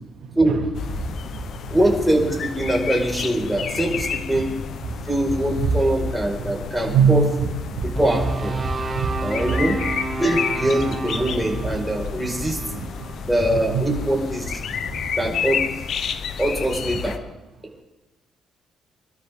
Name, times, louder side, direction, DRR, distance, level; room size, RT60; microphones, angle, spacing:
sound 1, 0.7-17.2, left 7 dB, 65° left, 1.0 m, -31 dB
voice 1, 1.0-1.8 4.8-4.9 5.6-5.7 6.4-6.6 6.8-7.2 7.7-7.9 8.6-9.8 12.2-12.4 12.7-13.9 15.0-15.3, right 7 dB, 75° right, 2 dB, 2.2 m, -25 dB
voice 2, 1.7-4.5 5.1-7.2 7.8-8.6 9.2-9.8 10.2-12.6 13.3-14.6 15.2-15.6 16.4-17.2, right 1 dB, ahead, -2 dB, 5.3 m, -22 dB
sound 2, 8.0-14.2, right 3 dB, 30° right, 1.3 m, -32 dB
25.5 x 12.5 x 3.8 m, 1.0 s
cardioid pair, 90°, 0 cm